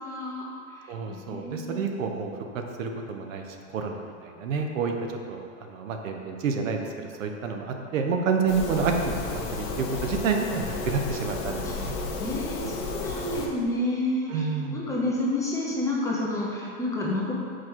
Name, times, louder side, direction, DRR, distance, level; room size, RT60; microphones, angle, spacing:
voice 1, 0.0-1.8 11.6-11.8 12.2-17.3, left 1 dB, 10° left, -5 dB, 0.5 m, -30 dB
voice 2, 0.9-3.4 3.7-4.9 5.3-11.9 14.3-14.8, right 5 dB, 70° right, 3 dB, 0.9 m, -29 dB
sound 1, 8.5-13.5, left 3 dB, 35° left, 0.9 m, -32 dB
6.1 x 4.7 x 4.5 m, 2.4 s
supercardioid pair, 140°, 40 cm